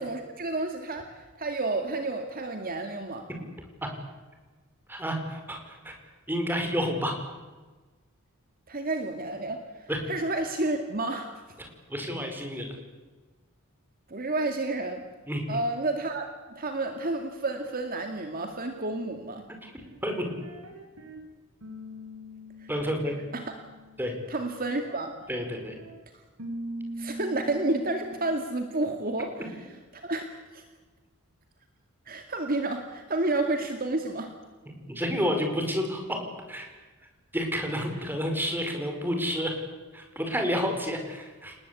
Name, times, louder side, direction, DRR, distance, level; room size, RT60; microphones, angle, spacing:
voice 1, 0.0-3.3 8.7-11.3 14.1-15.0 15.5-19.4 22.6-22.7 23.3-23.6 24.3-25.1 26.1-26.2 27.0-29.7 29.9-30.6 32.1-34.3, right 2 dB, 40° right, 5 dB, 2.1 m, -30 dB
voice 2, 4.9-6.0 6.3-7.2 9.9-10.0 11.6-12.7 15.3-15.6 19.6-19.7 20.0-20.3 22.7-23.1 24.0-24.1 25.3-25.8 34.9-36.7 37.3-39.5 39.9-41.6, equal, 10° right, 4 dB, 5.2 m, -30 dB
sound 1, 19.8-21.2 21.6-24.1 24.6-26.0 26.4-28.4, right 1 dB, 85° right, 7.8 m, -42 dB
29.5 x 19.5 x 8.4 m, 1.3 s
head